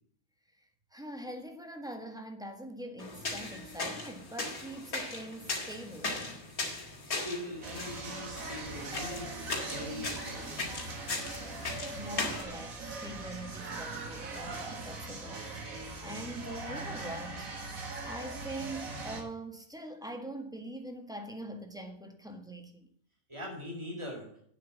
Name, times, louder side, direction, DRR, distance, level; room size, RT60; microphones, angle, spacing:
voice 1, 0.9-6.2 11.9-15.5 16.0-17.5 18.1-22.9, right 1 dB, 5° right, 5 dB, 1.5 m, -43 dB
sound 1, 3.0-12.4, left 3 dB, 80° left, 2.7 m, -38 dB
voice 2, 7.1-10.8 23.3-24.3, left 1 dB, 20° right, -1 dB, 4.5 m, -42 dB
sound 2, 7.6-19.2, right 3 dB, 70° right, 2.2 m, -41 dB
8.7 x 7.6 x 7.4 m, 0.63 s
omnidirectional pair, 1.5 m